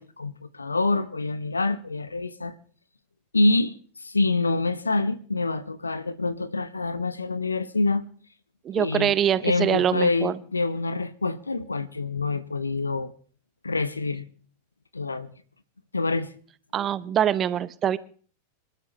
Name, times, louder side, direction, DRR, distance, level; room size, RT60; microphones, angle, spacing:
voice 1, 0.0-2.5 3.3-3.7 4.0-8.0 8.7-9.1 9.4-13.1 13.6-14.3 14.9-15.3 15.9-16.3, left 3 dB, 80° left, 0.8 m, -26 dB
voice 2, 8.6-10.4 16.7-18.0, right 9 dB, 25° right, 0.7 m, -24 dB
25.5 x 12.5 x 3.1 m
figure-of-eight pair, 90°, 0 cm